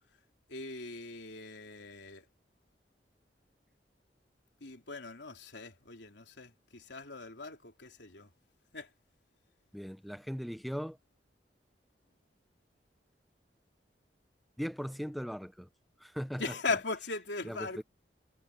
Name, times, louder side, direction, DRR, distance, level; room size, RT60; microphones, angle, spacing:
voice 1, 0.5-2.3 4.6-8.3 8.7-8.9 16.4-17.8, left 3 dB, 80° left, 3.4 m, -39 dB
voice 2, 9.7-11.0 14.6-15.7 16.0-16.4 17.4-17.8, equal, ahead, 0.7 m, -38 dB
head